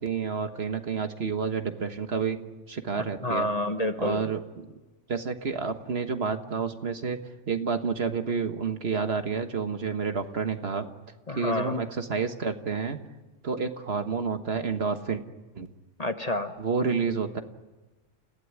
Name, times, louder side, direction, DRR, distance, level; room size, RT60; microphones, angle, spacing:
voice 1, 0.0-2.4 2.7-3.5 4.0-4.7 5.1-7.2 7.5-10.9 11.3-13.0 13.4-15.2 15.5-15.7 16.6-17.4, right 5 dB, 55° right, 8 dB, 1.6 m, -29 dB
voice 2, 3.2-4.3 11.3-11.8 16.0-16.5, left 1 dB, 30° left, 7 dB, 1.3 m, -28 dB
29.5 x 16.5 x 9.7 m, 1.2 s
omnidirectional pair, 1.3 m